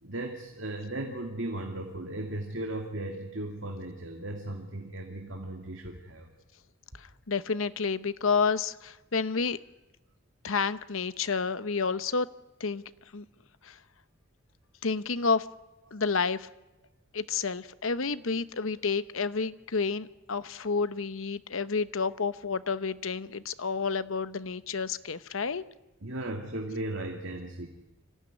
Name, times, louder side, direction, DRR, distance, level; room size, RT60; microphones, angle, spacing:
voice 1, 0.0-6.3 15.9-16.0 26.0-27.7, right 1 dB, 65° right, 2 dB, 2.5 m, -36 dB
voice 2, 7.3-9.6 10.4-12.3 12.6-12.8 13.1-13.2 13.6-13.8 14.8-15.5 15.9-16.5 17.1-25.6, left 5 dB, 70° left, 14 dB, 0.9 m, -30 dB
25.5 x 16.0 x 9.8 m, 1.0 s
head